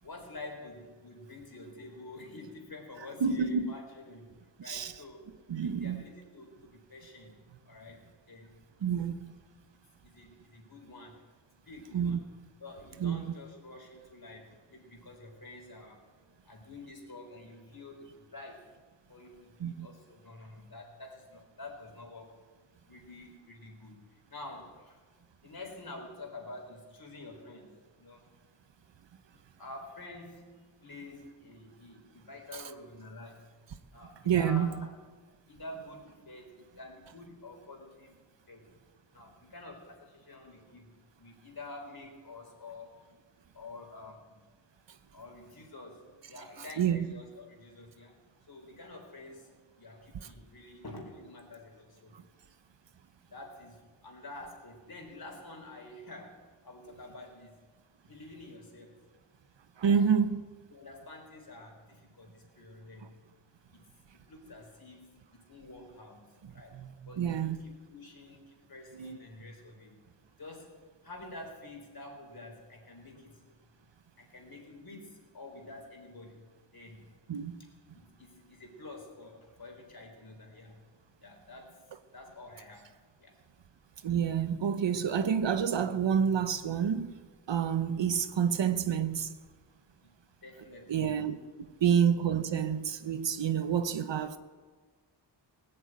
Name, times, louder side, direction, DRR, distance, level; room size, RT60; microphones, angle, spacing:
voice 1, 0.0-5.3 5.6-7.4 7.6-8.9 9.7-11.2 11.6-12.2 12.6-16.1 16.4-18.7 19.1-22.3 22.8-25.0 25.4-28.3 29.3-33.5 33.9-34.9 35.5-38.1 38.5-38.7 39.1-43.0 43.5-44.5 45.1-48.1 48.5-52.2 53.3-57.6 58.1-59.0 59.8-60.1 60.7-63.1 63.7-63.9 64.3-70.0 70.4-73.5 74.2-77.1 77.9-80.8 81.2-81.8 82.1-83.3 90.0-91.3, left 2 dB, 55° left, 4.2 m, -48 dB
voice 2, 3.2-3.7 4.7-4.9 5.5-6.0 8.8-9.3 11.9-12.2 13.0-13.2 19.6-19.9 34.2-34.8 46.8-47.1 52.1-52.2 59.8-60.4 66.4-67.6 69.0-69.2 77.3-77.6 84.0-87.1 87.5-89.3 90.9-91.4 91.8-94.4, right 7 dB, 85° right, 1.0 m, -28 dB
18.5 x 8.0 x 9.0 m
wide cardioid pair, 85°, 43 cm